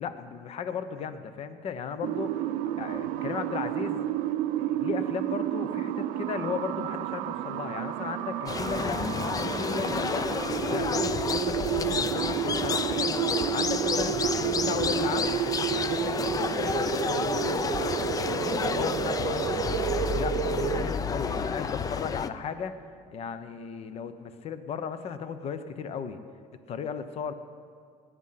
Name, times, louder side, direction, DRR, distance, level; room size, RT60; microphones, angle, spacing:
voice 1, 0.0-2.5 2.8-4.0 4.6-10.3 10.7-13.2 13.5-19.6 20.0-22.7 23.1-26.2 26.7-27.3, left 6 dB, 45° left, 11 dB, 1.0 m, -36 dB
sound 1, 2.0-20.8, right 12 dB, 75° right, 0.6 m, -31 dB
sound 2, 8.5-22.3, left 5 dB, 25° left, 0.6 m, -30 dB
18.5 x 9.8 x 5.8 m, 2.2 s
cardioid pair, 130°, 15 cm